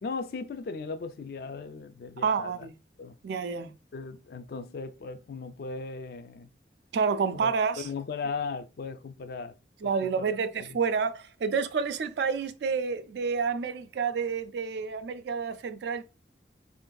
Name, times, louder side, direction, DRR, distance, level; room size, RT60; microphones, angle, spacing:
voice 1, 0.0-2.7 3.0-3.2 3.5-6.5 7.3-9.6 9.8-10.8, left 4 dB, 55° left, 0.3 m, -38 dB
voice 2, 2.2-2.7 3.2-3.7 6.9-7.9 9.8-16.0, right 5 dB, 65° right, 0.3 m, -29 dB
3.7 x 2.5 x 2.2 m
head